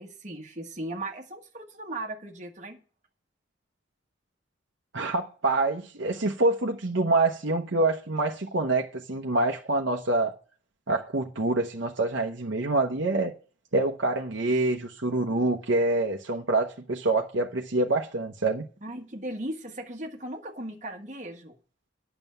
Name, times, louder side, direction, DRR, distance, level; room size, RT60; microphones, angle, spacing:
voice 1, 0.0-2.8 18.8-21.6, right 1 dB, 40° right, 1.5 m, -37 dB
voice 2, 4.9-10.3 10.9-13.3 13.7-18.7, right 2 dB, 75° right, 1.0 m, -26 dB
9.1 x 6.9 x 6.8 m
head